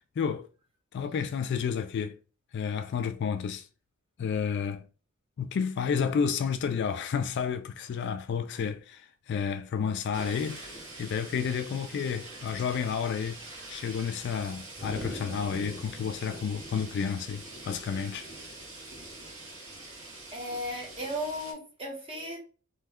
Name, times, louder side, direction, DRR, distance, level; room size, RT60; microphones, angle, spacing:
voice 1, 0.2-0.5 0.9-2.2 2.5-3.6 4.2-4.8 5.4-10.7 11.0-13.4 13.7-18.3, left 6 dB, 55° left, 0.3 m, -31 dB
sound 1, 10.1-21.5, right 2 dB, 70° right, 1.3 m, -44 dB
voice 2, 20.3-22.4, equal, 25° right, 1.0 m, -36 dB
2.8 x 2.2 x 3.5 m
head